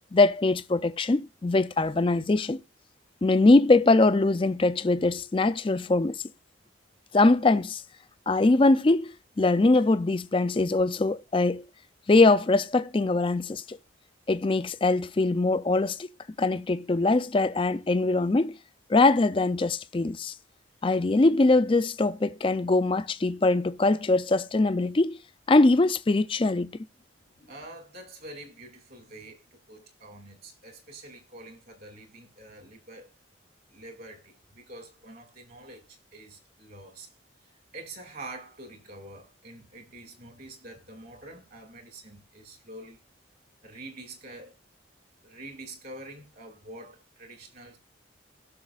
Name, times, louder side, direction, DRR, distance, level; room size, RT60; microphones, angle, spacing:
voice 1, 0.1-2.6 3.2-6.2 7.1-7.8 8.3-11.6 12.1-13.8 14.3-16.1 16.4-18.6 18.9-20.3 20.8-25.2 25.5-26.7, left 2 dB, 25° left, 0.4 m, -22 dB
voice 2, 27.4-33.1 33.7-37.1 37.7-43.0 43.6-44.5 45.2-47.8, right 2 dB, 50° right, 2.3 m, -46 dB
18.5 x 6.3 x 2.4 m
head